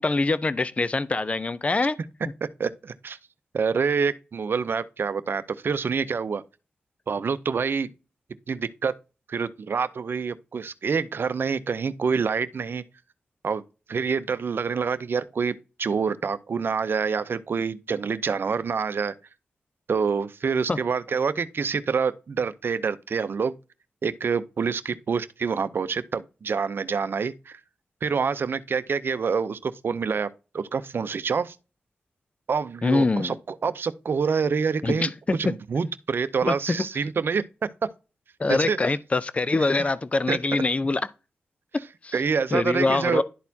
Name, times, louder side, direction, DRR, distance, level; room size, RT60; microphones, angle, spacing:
voice 1, 0.0-2.0 20.7-20.8 32.8-33.4 34.8-35.4 36.4-36.8 38.4-41.0 42.0-42.1 42.5-43.2, left 3 dB, 30° left, 0.5 m, -24 dB
voice 2, 2.6-3.2 3.5-6.4 7.1-7.9 8.5-8.9 9.3-12.8 13.4-13.6 13.9-15.5 15.8-19.1 19.9-23.5 24.0-27.6 28.0-30.3 30.5-31.6 32.5-33.4 33.6-37.4 38.5-38.9 40.3-40.4 42.1-43.2, right 5 dB, 65° right, 0.6 m, -26 dB
11.5 x 4.1 x 2.7 m
cardioid pair, 55°, 4 cm